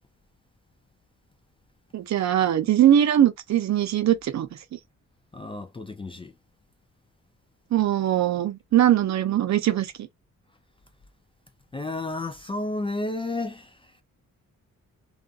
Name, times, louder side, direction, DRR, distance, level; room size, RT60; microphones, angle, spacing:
voice 1, 1.9-4.8 7.7-10.1, right 11 dB, 60° right, 0.5 m, -21 dB
voice 2, 5.3-6.3 11.7-14.0, left 2 dB, 15° left, 0.3 m, -32 dB
2.5 x 2.3 x 2.4 m
cardioid pair, 95°, 32 cm